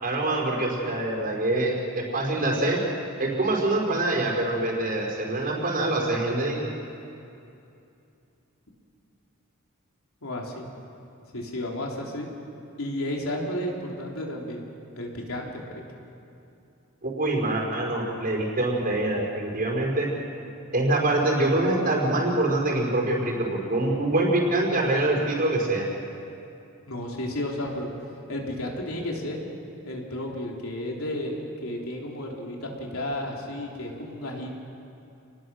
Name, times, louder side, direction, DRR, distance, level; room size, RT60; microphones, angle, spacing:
voice 1, 0.0-2.8 3.2-6.6 17.0-20.1 20.7-25.8, right 2 dB, 45° right, -1 dB, 5.0 m, -25 dB
voice 2, 10.2-10.7 11.3-12.3 12.8-14.6 15.0-15.8 26.9-27.9 28.3-29.4 29.8-34.5, left 1 dB, 70° left, -1 dB, 3.7 m, -32 dB
29.0 x 20.5 x 6.4 m, 2.6 s
head